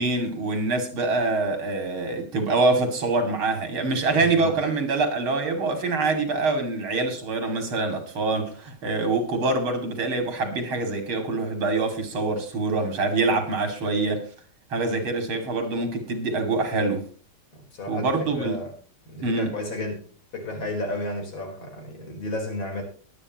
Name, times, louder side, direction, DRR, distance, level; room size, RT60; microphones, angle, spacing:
voice 1, 0.0-14.3 14.7-17.0 17.9-18.6 19.2-19.5, right 3 dB, 85° right, 3.4 m, -25 dB
voice 2, 4.1-4.6 14.8-15.1 17.7-18.7 19.1-20.1 20.3-22.8, left 2 dB, 70° left, 5.2 m, -33 dB
23.0 x 8.7 x 3.0 m
omnidirectional pair, 2.2 m